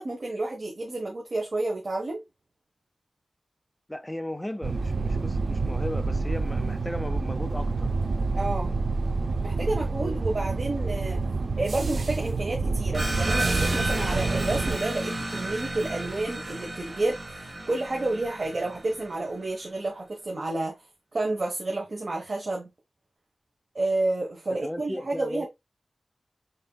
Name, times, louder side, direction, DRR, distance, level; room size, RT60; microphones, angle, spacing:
voice 1, 0.0-2.2 8.3-8.7 9.4-11.2 11.6-17.2 17.7-20.7 21.1-22.7 23.7-25.5, right 2 dB, 50° right, 1.1 m, -30 dB
voice 2, 3.9-7.9 10.0-10.2 24.6-25.5, left 1 dB, 10° left, 0.5 m, -36 dB
sound 1, 4.6-14.8, right 3 dB, 75° right, 0.5 m, -28 dB
sound 2, 12.9-19.2, right 2 dB, 30° right, 1.8 m, -32 dB
5.4 x 3.6 x 2.2 m
wide cardioid pair, 110°, 0 cm